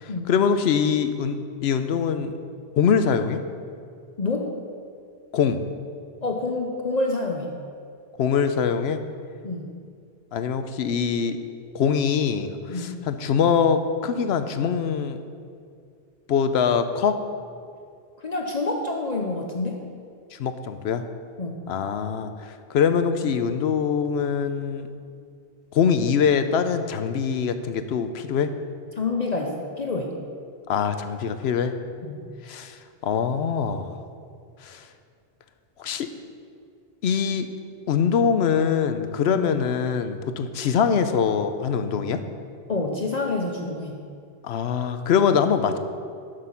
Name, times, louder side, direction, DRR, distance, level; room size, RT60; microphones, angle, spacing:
voice 1, 0.0-2.3 2.8-3.4 5.3-5.6 8.2-9.0 10.3-11.4 11.7-15.2 16.3-17.2 20.4-21.0 21.7-22.3 22.7-24.9 25.7-28.5 30.7-31.7 32.5-32.8 33.0-34.0 34.6-34.8 35.8-36.1 37.0-37.5 37.9-42.2 44.4-45.8, left 7 dB, 75° left, 9 dB, 0.9 m, -23 dB
voice 2, 4.2-4.5 6.2-7.5 9.4-9.7 12.7-13.0 18.2-19.8 21.4-21.6 29.0-30.2 32.0-32.2 39.3-39.4 42.7-44.0, left 3 dB, 45° left, 2 dB, 0.8 m, -27 dB
9.8 x 6.7 x 5.6 m, 2.3 s
omnidirectional pair, 1.1 m